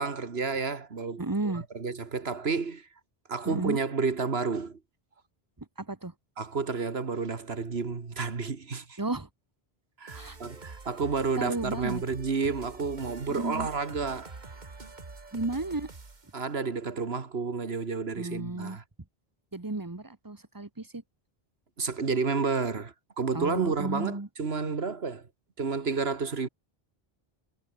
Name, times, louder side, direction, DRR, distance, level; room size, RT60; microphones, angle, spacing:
voice 1, 0.0-2.9 3.3-4.8 6.4-9.0 10.0-14.3 16.3-18.8 21.8-25.3 25.6-26.5, right 4 dB, 70° right, 2.0 m, -31 dB
voice 2, 1.2-1.6 3.4-3.8 5.6-6.1 9.0-9.3 10.1-10.4 11.4-12.0 13.3-13.7 15.3-15.9 18.2-18.8 19.5-21.0 23.3-24.3, right 2 dB, 20° right, 1.4 m, -33 dB
sound 1, 10.1-16.4, right 3 dB, 45° right, 2.0 m, -45 dB
omnidirectional pair, 1.1 m